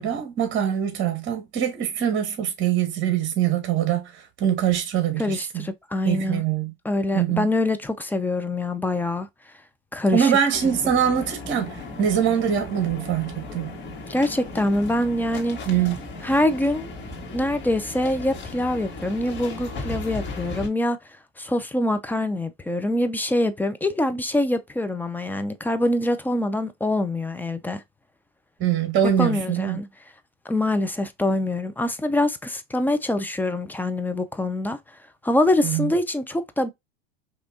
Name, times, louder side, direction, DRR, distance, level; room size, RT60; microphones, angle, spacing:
voice 1, 0.0-5.7 6.1-6.7 7.1-7.5 10.1-13.7 15.7-16.0 28.6-29.8 35.6-35.9, right 9 dB, 35° right, 1.9 m, -23 dB
voice 2, 5.2-6.4 6.8-9.3 9.9-10.3 14.1-15.6 16.2-16.9 17.3-21.0 21.4-27.8 29.2-29.9 30.5-34.8 35.2-36.7, left 1 dB, 5° left, 0.5 m, -24 dB
sound 1, 10.5-20.7, left 2 dB, 35° left, 1.8 m, -36 dB
5.1 x 3.0 x 2.6 m
hypercardioid pair, 110°, 32 cm